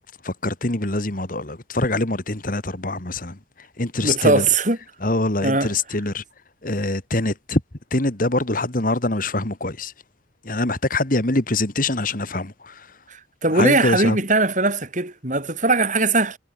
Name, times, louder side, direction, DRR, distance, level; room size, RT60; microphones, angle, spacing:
voice 1, 0.2-3.4 3.8-4.5 5.0-6.2 6.6-7.6 7.9-9.9 10.4-12.9 13.5-14.2, left 2 dB, 45° left, 2.1 m, -24 dB
voice 2, 4.0-4.8 5.4-5.7 13.1-16.4, right 3 dB, 40° right, 7.5 m, -20 dB
head